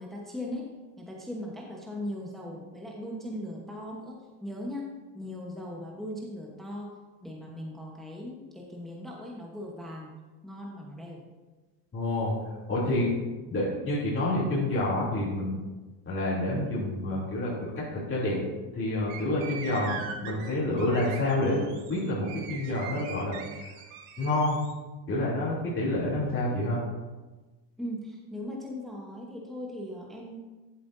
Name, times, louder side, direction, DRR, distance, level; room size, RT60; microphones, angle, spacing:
voice 1, 0.0-11.2 27.8-30.4, left 1 dB, ahead, -2 dB, 1.1 m, -39 dB
voice 2, 11.9-12.3 12.7-13.1 13.5-15.6 16.0-18.4 18.7-21.6 21.9-23.4 24.2-24.6 25.1-26.8, left 1 dB, 25° left, -8 dB, 2.9 m, -28 dB
sound 1, 19.1-24.7, right 6 dB, 75° right, 1.5 m, -42 dB
12.0 x 7.7 x 2.7 m, 1.2 s
cardioid pair, 125°, 50 cm